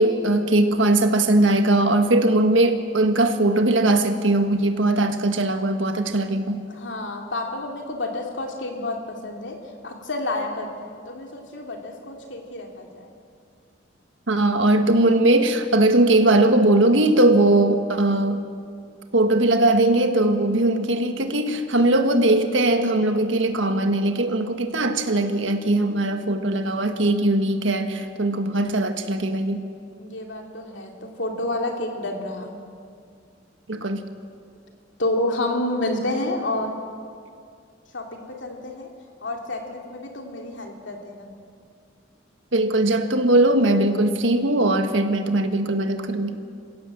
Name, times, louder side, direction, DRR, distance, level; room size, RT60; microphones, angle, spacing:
voice 1, 0.0-6.6 14.3-18.5 19.1-29.6 33.7-34.0 42.5-46.4, right 2 dB, 75° right, 7 dB, 1.6 m, -20 dB
voice 2, 6.7-9.6 9.8-13.1 30.0-32.6 35.0-36.8 37.9-38.9 39.2-41.3, left 1 dB, 70° left, 2 dB, 3.1 m, -29 dB
26.5 x 16.5 x 7.7 m, 2.3 s
head